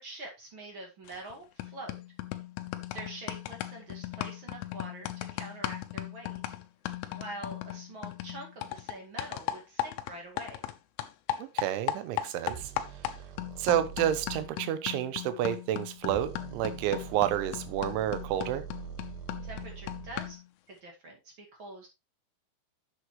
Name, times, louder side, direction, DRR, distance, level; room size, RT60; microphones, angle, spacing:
voice 1, 0.0-2.0 2.9-6.4 7.1-10.6 19.4-20.4 20.7-21.9, right 1 dB, 45° right, 1 dB, 1.7 m, -45 dB
sound 1, 1.1-1.3 1.6-10.7 11.0-20.5, left 13 dB, 85° left, 3.3 m, -38 dB
voice 2, 11.4-12.7 13.6-18.6, right 11 dB, 80° right, 12 dB, 3.3 m, -30 dB
sound 2, 12.5-14.5 16.0-20.3, right 8 dB, 60° right, 2.9 m, -44 dB
9.9 x 7.7 x 3.2 m, 0.24 s
omnidirectional pair, 5.5 m